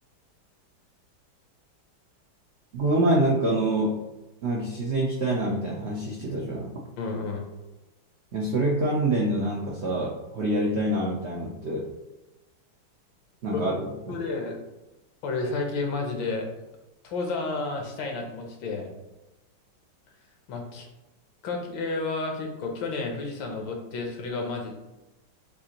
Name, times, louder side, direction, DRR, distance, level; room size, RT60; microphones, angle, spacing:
voice 1, 2.7-4.0 4.4-6.7 8.3-11.9 13.4-14.2, right 1 dB, 85° right, -2 dB, 0.5 m, -26 dB
voice 2, 7.0-7.4 13.5-13.7 14.1-14.6 15.2-16.5 17.0-18.9 20.5-20.9 21.4-24.7, left 3 dB, 80° left, 2 dB, 1.6 m, -31 dB
6.6 x 2.5 x 2.9 m, 1.0 s
omnidirectional pair, 2.1 m